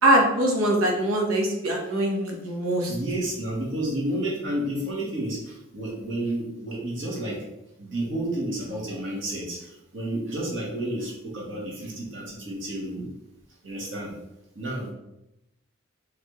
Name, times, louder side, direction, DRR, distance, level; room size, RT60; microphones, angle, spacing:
voice 1, 0.0-2.9, right 1 dB, 90° right, 0 dB, 1.0 m, -22 dB
voice 2, 2.9-7.4 7.8-13.1 13.6-14.1 14.5-14.9, right 1 dB, 65° right, -4 dB, 1.4 m, -31 dB
4.2 x 3.3 x 3.1 m, 0.90 s
head